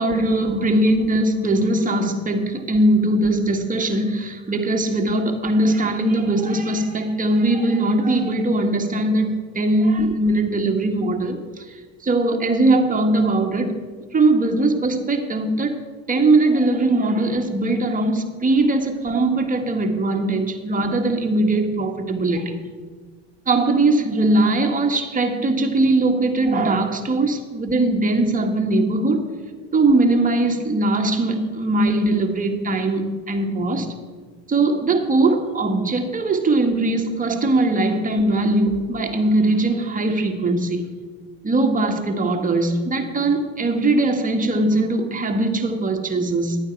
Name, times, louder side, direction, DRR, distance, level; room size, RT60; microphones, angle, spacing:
voice 1, 0.0-11.7 12.0-13.7 14.1-15.8 16.1-22.6 23.5-29.2 29.7-33.9 34.5-40.9 41.4-46.6, right 2 dB, 25° right, 3 dB, 1.6 m, -20 dB
11.5 x 9.0 x 4.6 m, 1.4 s
supercardioid pair, 80°, 32 cm